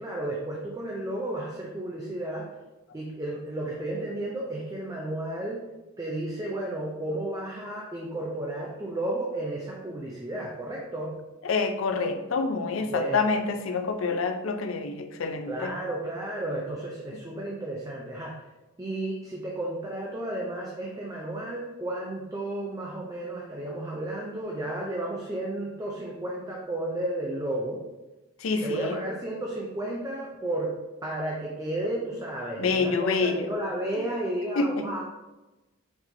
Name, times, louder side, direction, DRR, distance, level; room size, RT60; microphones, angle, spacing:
voice 1, 0.0-2.5 2.9-5.6 6.0-11.1 12.9-13.2 15.5-18.4 18.8-27.8 28.6-30.7 31.0-35.0, right 1 dB, 15° right, -3 dB, 0.5 m, -33 dB
voice 2, 11.4-15.7 28.4-29.0 32.6-33.5 34.6-34.9, left 4 dB, 75° left, 7 dB, 0.5 m, -27 dB
4.5 x 4.0 x 2.7 m, 1.1 s
head